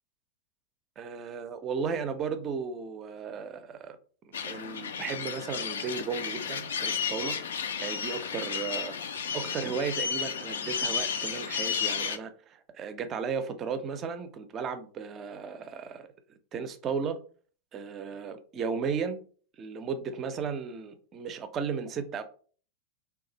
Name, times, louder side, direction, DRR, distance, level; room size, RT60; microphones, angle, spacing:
voice 1, 1.0-4.0 4.3-7.4 7.8-9.0 9.3-16.1 16.5-17.2 17.7-19.2 19.6-22.2, right 6 dB, 30° right, 0.5 m, -35 dB
sound 1, 4.3-12.2, left 6 dB, 65° left, 0.4 m, -33 dB
3.2 x 2.3 x 3.8 m
figure-of-eight pair, 90°, 0 cm